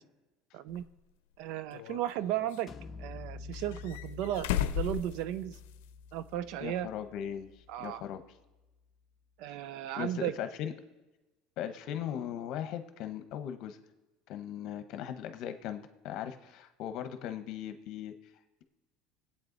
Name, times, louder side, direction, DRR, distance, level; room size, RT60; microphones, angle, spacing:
voice 1, 0.5-0.8 1.4-2.7 3.0-4.5 4.7-5.6 6.1-6.9 7.7-8.0 9.4-10.3, right 12 dB, 65° right, 15 dB, 0.5 m, -35 dB
sound 1, 0.7-0.8 1.7-2.6 3.5-5.9 6.2-6.3 7.8-7.9, left 11 dB, 90° left, 0.6 m, -35 dB
sound 2, 2.7-8.3, left 4 dB, 25° left, 1.0 m, -48 dB
voice 2, 6.6-7.5 7.8-8.2 9.5-9.6 10.0-10.7 11.6-13.8 14.3-18.1, left 9 dB, 55° left, 8 dB, 1.0 m, -38 dB
20.0 x 8.6 x 4.0 m, 1.1 s
supercardioid pair, 135°, 0 cm